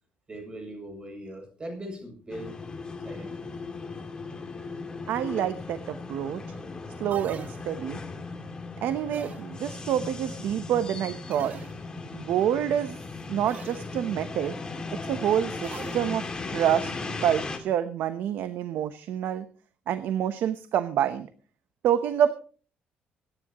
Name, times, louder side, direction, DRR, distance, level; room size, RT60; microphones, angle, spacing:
voice 1, 0.3-2.5 3.0-3.5, equal, 25° right, 3 dB, 7.1 m, -40 dB
sound 1, 2.3-17.6, left 3 dB, 25° left, 2.5 m, -37 dB
voice 2, 5.1-6.4 7.0-8.0 8.8-11.5 12.1-13.0 13.3-14.5 15.0-16.2 16.5-16.9 17.2-19.5 19.9-21.3 21.8-22.3, right 10 dB, 75° right, 11 dB, 0.9 m, -27 dB
sound 2, 7.1-8.1 9.1-9.9 11.3-12.2 13.5-14.0 15.6-16.5, right 6 dB, 45° right, 1.0 m, -44 dB
25.0 x 10.0 x 3.0 m, 0.40 s
cardioid pair, 115°, 4 cm